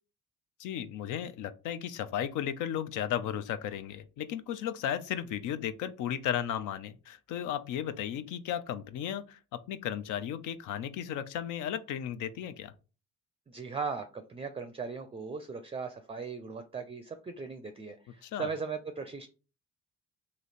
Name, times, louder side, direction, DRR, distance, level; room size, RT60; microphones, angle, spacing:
voice 1, 0.6-12.7 18.2-18.5, left 10 dB, 80° left, 13 dB, 0.5 m, -35 dB
voice 2, 13.5-19.3, right 5 dB, 20° right, 9 dB, 0.4 m, -38 dB
3.1 x 2.8 x 4.1 m, 0.34 s
cardioid pair, 90°, 30 cm